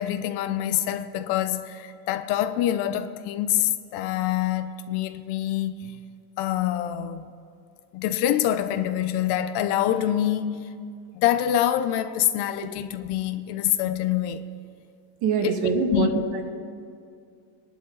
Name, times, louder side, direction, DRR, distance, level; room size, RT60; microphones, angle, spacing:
voice 1, 0.0-6.0 6.4-7.3 7.9-10.7 11.1-14.5 15.4-16.1, left 11 dB, 60° left, 0.8 m, -26 dB
voice 2, 15.2-16.1 16.3-16.4, right 5 dB, 55° right, 2.0 m, -23 dB
23.0 x 11.0 x 4.0 m
cardioid pair, 150°, 46 cm